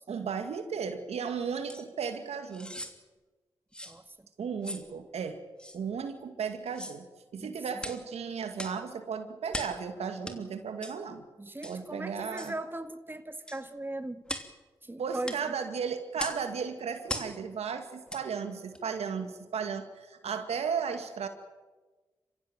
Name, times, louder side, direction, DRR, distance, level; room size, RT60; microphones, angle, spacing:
voice 1, 0.1-2.7 4.4-5.4 5.7-7.1 7.3-11.2 11.6-12.5 15.0-21.3, right 6 dB, 75° right, 7 dB, 2.3 m, -35 dB
sound 1, 1.7-1.8 2.5-3.0 3.7-4.0 4.6-4.9 5.6-5.8 6.7-7.0 7.8-8.0 8.6-8.8 9.5-9.8 10.2-10.4 10.8-11.0 11.6-11.8 12.4-12.6 13.5-13.6 14.3-14.5 15.2-15.4 16.2-16.4 17.1-17.3 18.1-18.2 18.7-18.8, left 1 dB, 10° left, 3.0 m, -39 dB
voice 2, 3.8-4.3 7.4-7.5 11.4-14.2 14.8-15.5, right 2 dB, 20° right, 9 dB, 1.9 m, -39 dB
27.5 x 15.5 x 9.0 m, 1.3 s
supercardioid pair, 40°, 11 cm